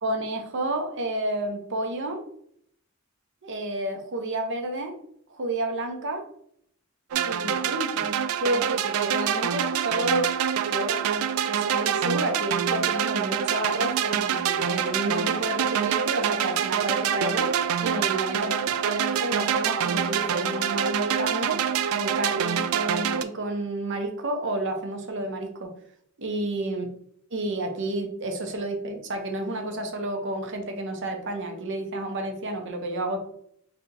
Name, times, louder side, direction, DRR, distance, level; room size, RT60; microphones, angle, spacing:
voice 1, 0.0-2.2 3.4-5.0 5.3-6.2 7.2-8.1 8.4-10.3 10.6-11.0 11.5-17.5 17.8-21.6 21.9-25.7 26.2-26.9 27.3-33.2, right 1 dB, 60° right, 4 dB, 0.7 m, -30 dB
sound 1, 7.1-23.2, right 8 dB, 85° right, 0.3 m, -26 dB
sound 2, 14.5-21.0, left 2 dB, 25° right, 1.0 m, -46 dB
3.3 x 2.7 x 3.9 m, 0.68 s
head